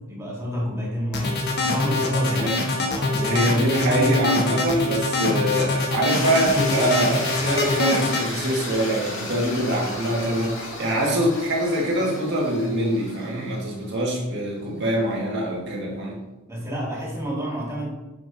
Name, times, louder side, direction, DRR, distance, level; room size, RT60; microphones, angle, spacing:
voice 1, 0.0-4.1 4.4-4.7 16.5-17.9, equal, 15° right, -5 dB, 1.9 m, -30 dB
sound 1, 1.1-8.2, left 2 dB, 50° left, 1.0 m, -24 dB
voice 2, 3.2-16.2, right 1 dB, 55° right, -2 dB, 1.7 m, -24 dB
Future Glitch Sweep, 6.1-14.1, left 2 dB, 65° left, 2.0 m, -34 dB
6.8 x 6.1 x 2.7 m, 1.0 s
head